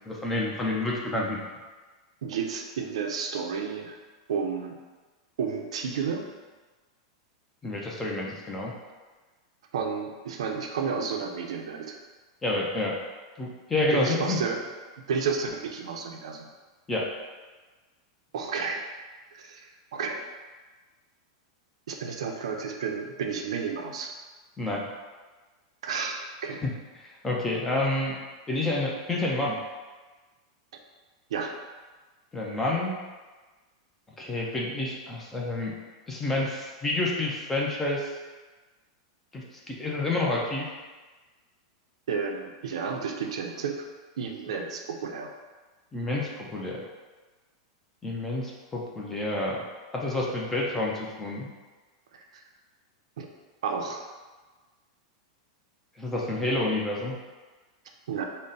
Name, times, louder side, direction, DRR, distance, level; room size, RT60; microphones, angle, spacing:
voice 1, 0.1-1.4 7.6-8.7 12.4-13.0 13.4-14.4 16.9-17.1 24.6-24.9 26.6-26.7 27.0-28.1 28.5-29.6 32.3-32.9 34.2-35.7 36.1-38.1 39.3-40.7 45.9-46.8 48.0-49.6 49.9-51.5 56.0-57.2, left 2 dB, 5° left, -3 dB, 0.3 m, -29 dB
voice 2, 2.2-4.0 4.3-4.8 5.4-6.3 9.7-12.0 13.9-14.6 15.1-16.5 18.3-18.9 19.3-20.2 21.9-24.1 25.8-26.6 31.3-31.5 42.1-43.9 44.2-45.3 52.1-52.4 53.2-53.3 53.6-54.0 58.1-58.2, right 5 dB, 80° right, 3 dB, 0.5 m, -31 dB
3.8 x 2.0 x 3.8 m, 1.3 s
supercardioid pair, 180°, 3 cm